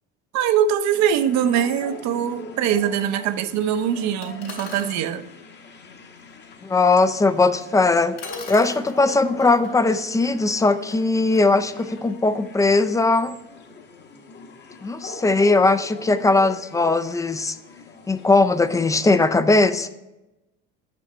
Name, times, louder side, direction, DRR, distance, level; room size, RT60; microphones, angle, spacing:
voice 1, 0.3-5.2, right 9 dB, 60° right, 11 dB, 0.7 m, -22 dB
sound 1, 0.9-19.2, left 3 dB, 35° left, 1.0 m, -42 dB
sound 2, 4.2-5.0 7.6-7.7 8.2-13.0, left 5 dB, 55° left, 2.0 m, -42 dB
voice 2, 6.6-8.2 8.5-13.4 14.8-17.5 18.1-19.9, left 3 dB, 10° left, 12 dB, 0.3 m, -19 dB
6.4 x 5.2 x 4.3 m, 0.97 s
supercardioid pair, 90°, 32 cm